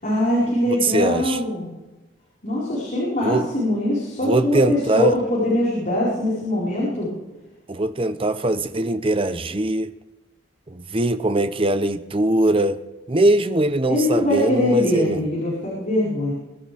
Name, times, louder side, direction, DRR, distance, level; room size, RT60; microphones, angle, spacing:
voice 1, 0.0-1.7 2.4-7.1 13.9-16.3, left 1 dB, 45° left, 4.9 m, -22 dB
voice 2, 0.7-1.4 3.2-3.5 4.2-5.2 7.7-9.9 10.7-12.8 13.1-15.2, right 2 dB, 30° right, 0.8 m, -21 dB
23.0 x 12.5 x 3.5 m
head